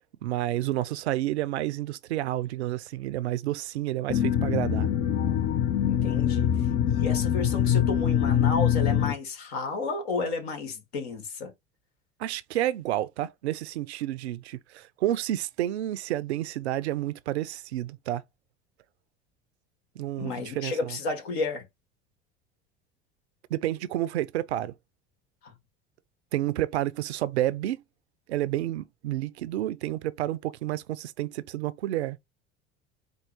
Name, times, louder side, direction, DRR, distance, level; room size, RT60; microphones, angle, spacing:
voice 1, 0.2-4.9 12.2-18.2 20.0-21.0 23.5-24.7 26.3-27.8 28.3-32.2, right 14 dB, 85° right, 0.5 m, -30 dB
sound 1, 4.1-9.1, left 9 dB, 55° left, 0.9 m, -24 dB
voice 2, 5.8-11.5 20.2-21.7 25.4-25.5, left 4 dB, 75° left, 1.7 m, -32 dB
4.5 x 2.3 x 4.7 m
hypercardioid pair, 75°, 32 cm